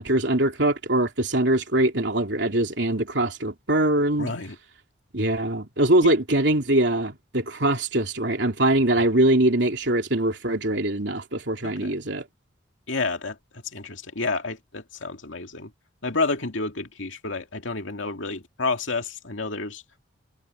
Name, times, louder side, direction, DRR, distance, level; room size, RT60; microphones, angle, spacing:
voice 1, 0.0-4.3 5.1-12.2, right 1 dB, 65° right, 3.3 m, -22 dB
voice 2, 4.2-4.6 6.0-6.1 9.0-9.1 11.6-11.9 12.9-15.7 16.0-19.8, left 3 dB, 80° left, 2.3 m, -30 dB
head